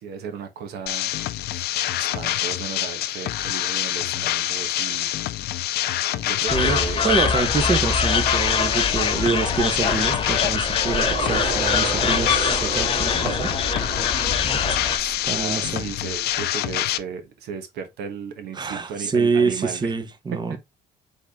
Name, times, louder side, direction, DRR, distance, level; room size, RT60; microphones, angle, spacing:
voice 1, 0.0-1.1 1.6-1.7 2.0-5.1 6.1-7.0 15.3-19.9 20.5-20.6, right 7 dB, 75° right, 1.2 m, -35 dB
sound 1, 0.9-17.0, left 14 dB, 70° left, 0.5 m, -26 dB
sound 2, 6.5-15.0, left 5 dB, 30° left, 0.7 m, -24 dB
voice 2, 6.5-13.6 14.5-14.8 15.2-15.9 18.6-20.6, right 4 dB, 25° right, 0.8 m, -26 dB
sound 3, 10.8-16.1, right 4 dB, 60° right, 2.6 m, -32 dB
4.2 x 3.5 x 3.6 m
cardioid pair, 110°, 17 cm